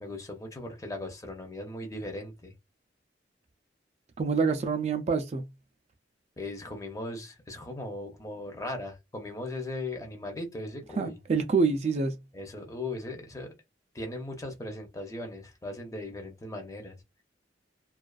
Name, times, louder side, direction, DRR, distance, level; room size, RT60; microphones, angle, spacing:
voice 1, 0.0-2.5 6.4-11.2 12.3-13.5 13.9-17.0, left 2 dB, 20° left, 0.6 m, -38 dB
voice 2, 4.2-5.4 11.0-12.2, right 4 dB, 35° right, 0.3 m, -26 dB
2.4 x 2.3 x 2.3 m
head